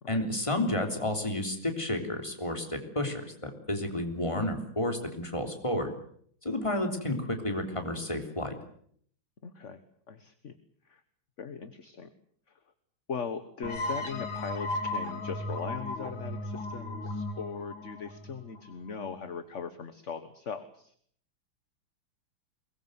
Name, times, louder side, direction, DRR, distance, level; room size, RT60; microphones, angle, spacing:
voice 1, 0.1-5.9 6.4-8.5, left 1 dB, 15° left, 5 dB, 3.5 m, -31 dB
voice 2, 9.4-9.8 10.1-10.5 10.9-11.0 11.4-12.1 13.1-20.9, left 6 dB, 40° left, 11 dB, 1.4 m, -39 dB
sound 1, 13.6-19.1, left 2 dB, 70° left, 3.4 m, -36 dB
23.0 x 20.5 x 8.0 m, 0.62 s
omnidirectional pair, 2.2 m